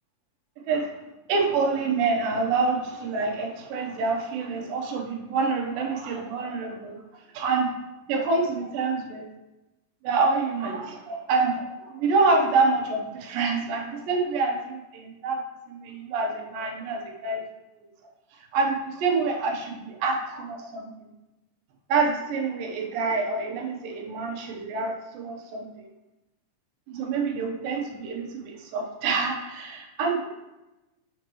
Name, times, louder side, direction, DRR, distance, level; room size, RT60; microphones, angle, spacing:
voice 1, 1.3-7.0 7.3-7.7 8.1-9.2 10.0-15.4 15.7-17.4 18.5-21.1 21.9-25.7 26.9-30.3, right 4 dB, 90° right, 2 dB, 2.7 m, -27 dB
6.4 x 6.1 x 3.0 m, 1.0 s
omnidirectional pair, 3.9 m